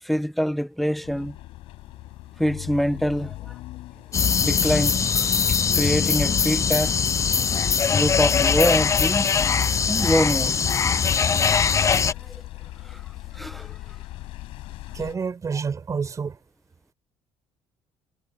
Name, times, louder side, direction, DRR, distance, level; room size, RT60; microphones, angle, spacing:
voice 1, 0.0-1.3 2.4-3.5 4.4-6.9 7.7-10.6 12.0-12.3 12.8-13.0 13.3-13.8, equal, ahead, 1.3 m, -25 dB
sound 1, 1.0-15.2, left 17 dB, 75° left, 6.3 m, -41 dB
sound 2, 4.1-12.1, left 6 dB, 30° left, 0.7 m, -21 dB
voice 2, 14.9-16.4, right 5 dB, 35° right, 7.4 m, -28 dB
supercardioid pair, 90°, 9 cm